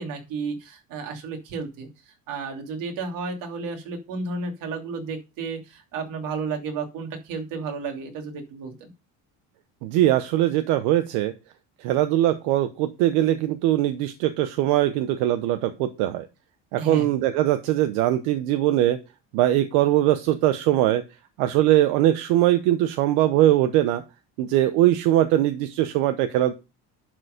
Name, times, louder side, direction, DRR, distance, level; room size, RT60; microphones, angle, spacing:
voice 1, 0.0-1.9 2.3-8.9 16.8-17.1, right 4 dB, 60° right, 3 dB, 2.9 m, -32 dB
voice 2, 9.8-11.3 11.8-16.3 16.7-19.0 19.3-21.0 21.4-24.0 24.4-26.5, right 13 dB, 85° right, 10 dB, 0.9 m, -21 dB
11.0 x 4.5 x 5.1 m, 0.28 s
cardioid pair, 125°, 36 cm